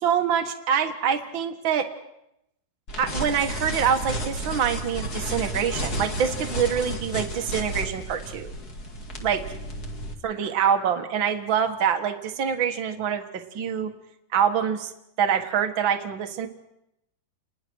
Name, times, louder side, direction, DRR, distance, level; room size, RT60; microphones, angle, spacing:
voice 1, 0.0-1.9 3.0-8.5 9.2-9.4 10.2-13.9 14.3-14.9 15.2-16.5, right 8 dB, 65° right, 5 dB, 1.2 m, -25 dB
sound 1, 2.9-10.1, equal, 30° left, 1.8 m, -32 dB
29.5 x 21.0 x 6.4 m, 0.82 s
omnidirectional pair, 4.8 m